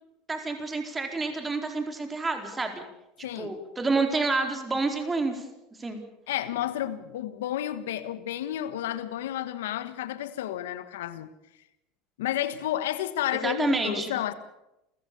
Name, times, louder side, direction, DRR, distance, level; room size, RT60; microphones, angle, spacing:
voice 1, 0.3-2.8 3.4-5.5 5.8-6.0 13.3-14.1, right 3 dB, 20° right, 4.4 m, -28 dB
voice 2, 3.2-3.5 6.3-11.3 12.2-14.3, left 12 dB, 85° left, 1.5 m, -31 dB
28.5 x 15.5 x 7.0 m
hypercardioid pair, 95°, 0 cm